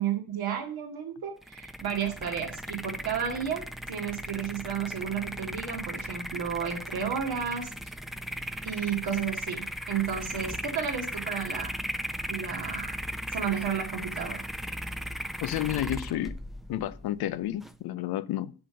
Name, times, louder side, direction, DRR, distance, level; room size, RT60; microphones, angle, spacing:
voice 1, 0.0-7.7 8.6-11.8 12.3-13.0 13.3-14.4, right 8 dB, 85° right, 2.2 m, -32 dB
sound 1, 1.4-17.8, equal, ahead, 0.6 m, -37 dB
voice 2, 15.4-16.4 16.7-18.5, left 13 dB, 90° left, 0.7 m, -31 dB
6.9 x 5.2 x 7.0 m
cardioid pair, 75°, 36 cm